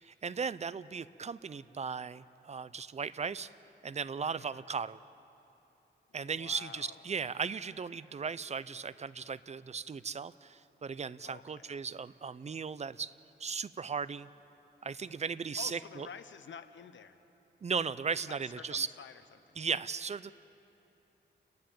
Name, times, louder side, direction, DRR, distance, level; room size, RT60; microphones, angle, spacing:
voice 1, 0.0-3.5 3.8-5.0 6.1-13.1 13.4-14.3 14.8-16.1 17.6-18.9 19.6-20.3, right 5 dB, 35° right, 16 dB, 0.5 m, -37 dB
voice 2, 6.1-7.0 11.2-11.7 15.5-17.2 18.3-19.6, left 7 dB, 85° left, 11 dB, 0.9 m, -49 dB
30.0 x 10.5 x 8.5 m, 2.9 s
wide cardioid pair, 90°, 19 cm